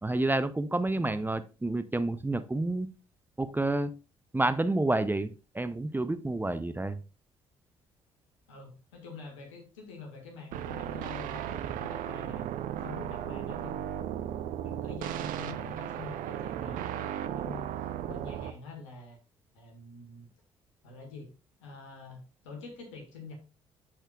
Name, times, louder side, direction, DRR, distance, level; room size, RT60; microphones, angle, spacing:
voice 1, 0.0-2.9 3.4-3.9 4.3-7.0, right 2 dB, 10° right, 11 dB, 0.6 m, -29 dB
voice 2, 0.9-1.3 8.5-12.5 12.8-13.8 14.6-17.6 18.1-19.2 19.5-20.3 20.8-21.3 21.6-23.3, left 3 dB, 80° left, 2 dB, 1.8 m, -46 dB
sound 1, 10.5-18.5, right 11 dB, 60° right, 0.6 m, -35 dB
13.0 x 4.4 x 2.4 m, 0.32 s
hypercardioid pair, 50°, 15 cm